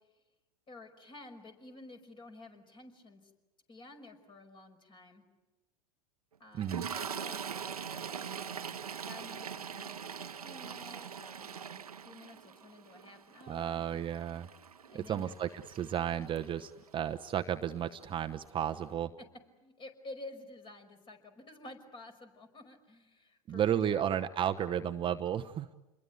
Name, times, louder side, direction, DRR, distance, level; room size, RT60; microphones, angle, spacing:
voice 1, 0.7-3.3 3.7-5.2 6.4-8.8 9.1-13.8 14.9-15.4 19.6-24.1, left 2 dB, 25° left, 7 dB, 5.5 m, -51 dB
voice 2, 6.5-6.9 13.5-14.5 14.9-19.1 23.5-25.7, right 9 dB, 25° right, 8 dB, 0.9 m, -33 dB
Toilet flush, 6.6-16.9 17.8-18.0 18.3-18.5, right 7 dB, 90° right, 1.0 m, -43 dB
28.5 x 22.0 x 9.4 m, 1.1 s
hypercardioid pair, 95°, 19 cm